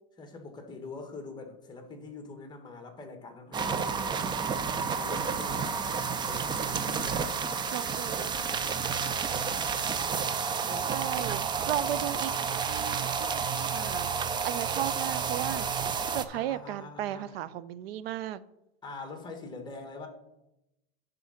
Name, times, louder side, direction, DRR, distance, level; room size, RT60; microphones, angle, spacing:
voice 1, 0.2-4.5 5.0-7.7 10.7-11.1 16.3-17.4 18.8-20.1, left 3 dB, 15° left, 5 dB, 1.7 m, -45 dB
sound 1, 3.5-16.2, right 6 dB, 15° right, 0.4 m, -30 dB
voice 2, 7.7-8.3 10.9-14.1 14.4-15.7 16.1-18.4, right 12 dB, 85° right, 16 dB, 0.6 m, -35 dB
10.5 x 3.8 x 5.7 m, 0.89 s
supercardioid pair, 130°, 29 cm